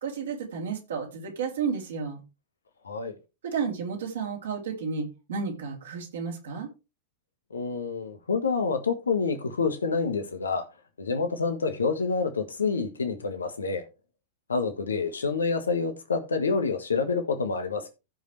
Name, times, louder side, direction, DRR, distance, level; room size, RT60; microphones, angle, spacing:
voice 1, 0.0-2.2 3.4-6.7, right 5 dB, 65° right, 3.2 m, -32 dB
voice 2, 7.5-10.6 11.0-13.8 14.5-17.9, left 4 dB, 75° left, 1.5 m, -27 dB
16.0 x 5.3 x 3.3 m
figure-of-eight pair, 90°, 0 cm